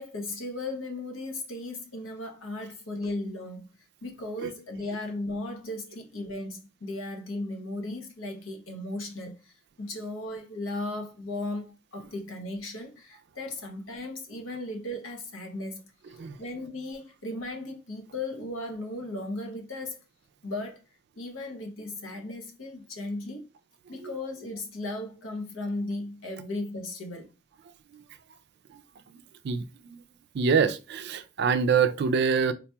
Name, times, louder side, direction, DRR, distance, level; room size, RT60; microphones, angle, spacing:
voice 1, 0.0-3.7 4.0-20.0 20.4-20.8 21.2-23.5 23.9-27.3, left 2 dB, 75° left, 0.9 m, -36 dB
voice 2, 29.1-30.0 30.3-32.5, right 6 dB, 55° right, 0.3 m, -26 dB
3.9 x 2.9 x 2.2 m
head